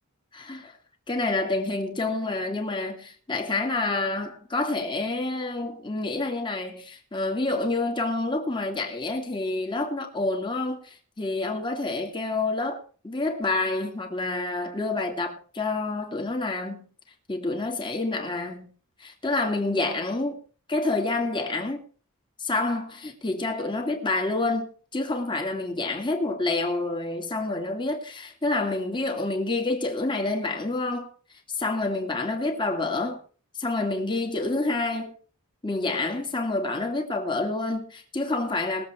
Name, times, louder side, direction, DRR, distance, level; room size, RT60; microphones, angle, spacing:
voice 1, 0.3-0.7 1.1-12.8 13.0-16.9 17.3-18.7 19.0-20.4 20.7-21.8 22.4-31.1 31.5-33.2 33.6-35.1 35.6-38.8, left 2 dB, 20° left, 2.5 m, -28 dB
21.0 x 7.7 x 4.5 m
head